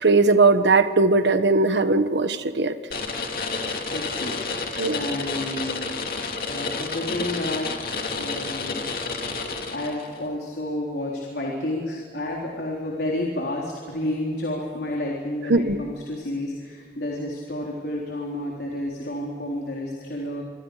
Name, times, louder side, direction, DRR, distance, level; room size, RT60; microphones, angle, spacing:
voice 1, 0.0-2.7 4.8-4.9 15.5-15.8, right 3 dB, 85° right, 9 dB, 1.3 m, -19 dB
sound 1, 2.9-10.2, left 4 dB, 55° left, 2.7 m, -30 dB
voice 2, 3.9-4.4 4.9-5.9 6.5-7.7 8.2-8.9 9.7-20.4, left 1 dB, 70° left, -2 dB, 3.8 m, -30 dB
27.5 x 25.5 x 5.0 m, 2.1 s
head